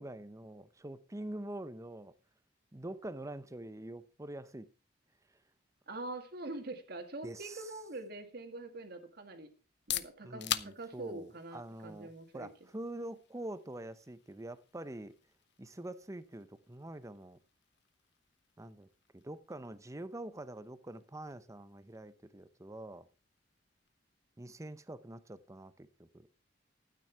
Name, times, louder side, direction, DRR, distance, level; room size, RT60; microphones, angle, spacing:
voice 1, 0.0-2.1 2.7-4.7 7.2-7.6 10.2-15.2 15.6-17.4 18.6-18.9 19.1-23.1 24.4-26.3, right 1 dB, 15° right, 0.7 m, -45 dB
voice 2, 5.9-9.5 9.9-12.5, right 2 dB, 60° right, 2.0 m, -44 dB
sound 1, 9.6-25.2, left 12 dB, 65° left, 0.7 m, -47 dB
12.5 x 9.3 x 4.6 m
head